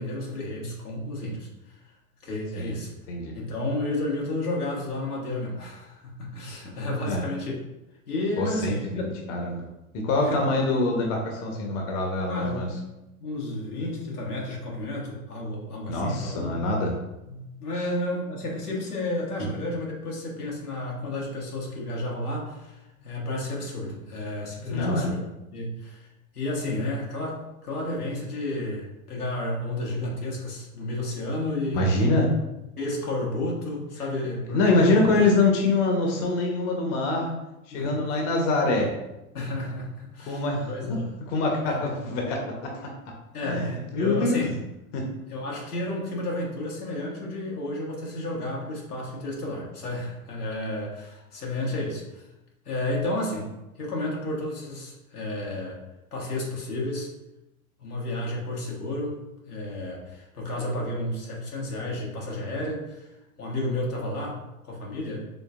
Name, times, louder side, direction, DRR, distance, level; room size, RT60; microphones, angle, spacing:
voice 1, 0.0-1.8 2.2-2.9 3.3-7.6 8.1-9.1 10.2-10.6 12.3-12.7 13.2-16.5 17.3-25.2 25.5-26.1 26.3-31.9 32.8-35.2 37.7-38.2 39.3-41.1 41.6-41.9 43.3-44.6 45.3-52.2 52.6-53.5 53.8-55.8 56.1-57.1 57.8-63.1 63.4-65.3, left 1 dB, 90° left, -3 dB, 1.3 m, -32 dB
voice 2, 8.4-9.6 9.9-12.7 15.9-16.9 19.4-19.5 24.7-25.1 31.7-32.3 34.5-37.3 37.7-38.9 40.3-41.0 41.3-42.9 43.4-44.4 44.9-45.0, left 2 dB, 55° left, 1 dB, 1.1 m, -24 dB
5.1 x 3.3 x 2.4 m, 0.95 s
hypercardioid pair, 95°, 44 cm